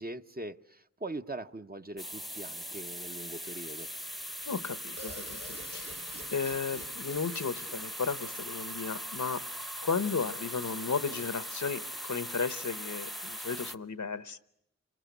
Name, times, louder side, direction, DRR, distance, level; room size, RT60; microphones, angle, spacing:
voice 1, 0.0-3.9, right 2 dB, 30° right, 8 dB, 0.9 m, -41 dB
sound 1, 2.0-13.8, equal, ahead, 0.9 m, -40 dB
voice 2, 4.4-5.4 5.7-5.9 6.3-9.4 9.8-14.4, left 5 dB, 80° left, 14 dB, 1.0 m, -34 dB
sound 2, 5.0-8.7, right 2 dB, 60° right, 3.1 m, -49 dB
28.5 x 21.0 x 8.2 m, 0.76 s
wide cardioid pair, 50°, 30 cm